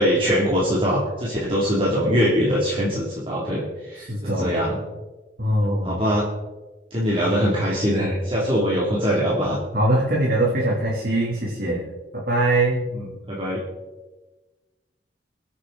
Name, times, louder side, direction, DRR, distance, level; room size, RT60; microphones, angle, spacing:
voice 1, 0.0-4.8 5.8-6.3 6.9-9.6 12.9-13.6, equal, 30° right, -6 dB, 2.8 m, -22 dB
voice 2, 4.1-4.5 5.4-6.0 9.7-11.8 12.3-12.9, right 1 dB, 55° right, -5 dB, 3.0 m, -22 dB
22.5 x 8.8 x 4.0 m, 1.1 s
head